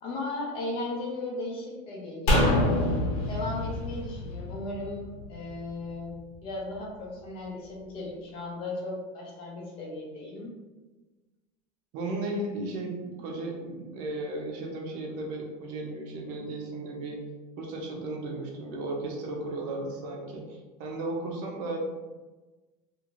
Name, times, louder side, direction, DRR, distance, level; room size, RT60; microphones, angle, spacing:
voice 1, 0.0-2.7 3.3-10.6, left 2 dB, 30° left, -2 dB, 0.4 m, -36 dB
sound 1, 2.3-5.6 5.9-6.0, left 1 dB, 85° left, 0.8 m, -26 dB
voice 2, 11.9-17.2 17.6-21.8, right 2 dB, 45° right, -1 dB, 0.6 m, -35 dB
2.5 x 2.5 x 2.9 m, 1.2 s
cardioid pair, 175°, 19 cm